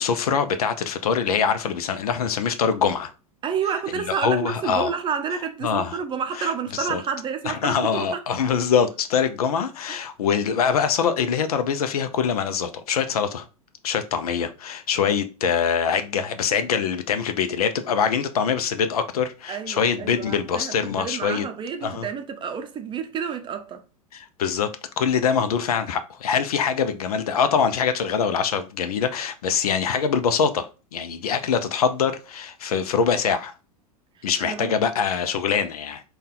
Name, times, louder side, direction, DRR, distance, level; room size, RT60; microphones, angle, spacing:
voice 1, 0.0-3.1 4.2-4.9 5.6-6.0 6.4-6.5 6.9-7.0 7.5-13.5 13.8-21.5 21.8-22.1 24.1-24.7 25.0-33.5 34.2-36.0, left 7 dB, 75° left, 0.5 m, -24 dB
voice 2, 3.4-8.2 9.9-10.0 19.5-23.8 34.4-34.8, right 7 dB, 25° right, 0.6 m, -29 dB
4.0 x 2.3 x 3.7 m
hypercardioid pair, 95°, 20 cm